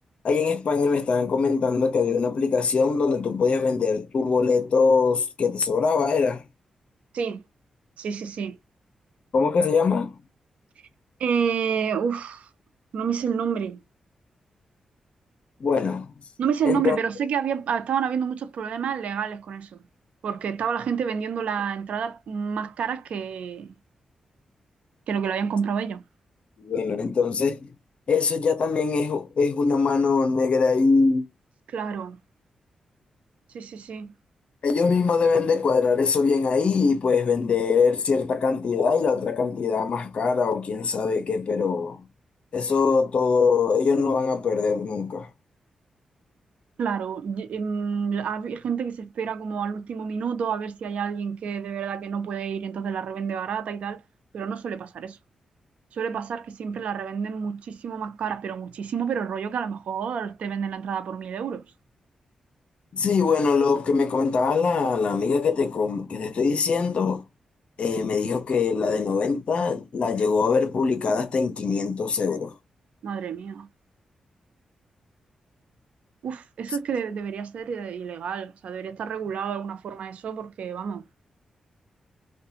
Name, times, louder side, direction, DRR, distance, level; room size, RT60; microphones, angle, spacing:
voice 1, 0.2-6.4 9.3-10.1 15.6-16.1 16.6-17.0 26.6-27.7 28.1-31.3 34.6-42.0 42.5-45.3 62.9-67.2 67.8-72.5, left 4 dB, 60° left, 0.6 m, -22 dB
voice 2, 8.0-8.6 11.2-12.5 12.9-13.8 16.4-19.8 20.2-23.7 25.1-26.0 31.7-32.2 33.5-34.1 46.8-54.0 54.3-55.2 55.9-61.6 73.0-73.7 76.2-81.0, right 7 dB, 75° right, 0.4 m, -29 dB
2.4 x 2.2 x 2.7 m
cardioid pair, 60°, 2 cm